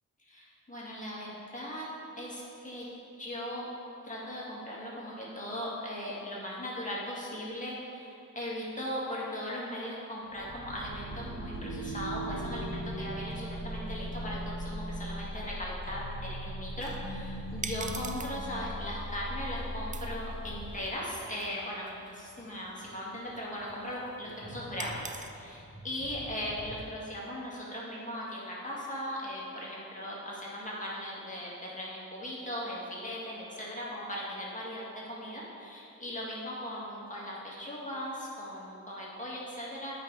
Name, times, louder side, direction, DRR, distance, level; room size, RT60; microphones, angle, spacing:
voice 1, 0.2-1.9 2.2-2.9 3.2-3.7 4.0-39.9, equal, 25° left, -6 dB, 1.9 m, -38 dB
sound 1, 10.3-20.9, equal, 40° right, 1.9 m, -39 dB
sound 2, 16.8-25.3, right 5 dB, 25° right, 0.4 m, -47 dB
sound 3, 20.3-26.8, equal, 5° right, 1.9 m, -50 dB
8.8 x 5.2 x 4.7 m, 2.7 s
cardioid pair, 85°, 32 cm